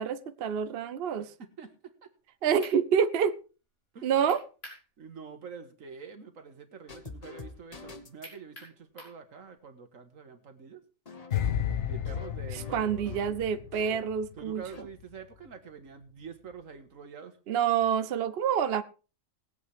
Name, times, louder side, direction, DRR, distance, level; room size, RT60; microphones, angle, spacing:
voice 1, 0.0-1.3 2.4-3.4 4.0-4.4 12.5-14.6 17.5-18.8, right 8 dB, 55° right, 0.8 m, -27 dB
voice 2, 1.4-2.1 3.9-4.2 5.0-10.8 11.8-13.1 14.4-17.4, right 6 dB, 80° right, 1.8 m, -46 dB
sound 1, 2.2-2.3 2.6-2.8 4.3-4.9 5.2-5.3 8.2-9.2, equal, 50° left, 5.2 m, -47 dB
sound 2, 6.9-8.4 11.1-14.2 14.5-14.8, left 4 dB, 30° left, 1.1 m, -47 dB
sound 3, 11.3-14.5 14.8-15.0, left 9 dB, 65° left, 1.2 m, -33 dB
19.5 x 8.2 x 3.4 m
omnidirectional pair, 1.4 m